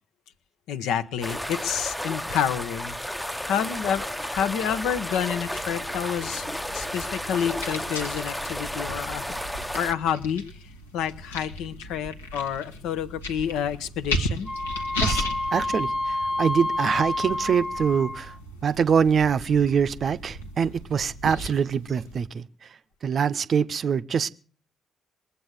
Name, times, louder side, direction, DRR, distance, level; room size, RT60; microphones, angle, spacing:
voice 1, 0.7-3.0 3.5-9.3 9.8-14.5, left 8 dB, 65° left, 0.8 m, -29 dB
sound 1, 1.2-9.9, equal, 5° left, 0.7 m, -33 dB
sound 2, 5.3-22.3, left 1 dB, 85° left, 1.2 m, -36 dB
Wind instrument woodwind instrument, 14.5-18.4, left 2 dB, 35° left, 1.1 m, -29 dB
voice 2, 15.5-18.3 18.6-22.4 23.0-24.3, right 7 dB, 50° right, 0.7 m, -24 dB
21.0 x 8.4 x 7.8 m
figure-of-eight pair, 40°, 0 cm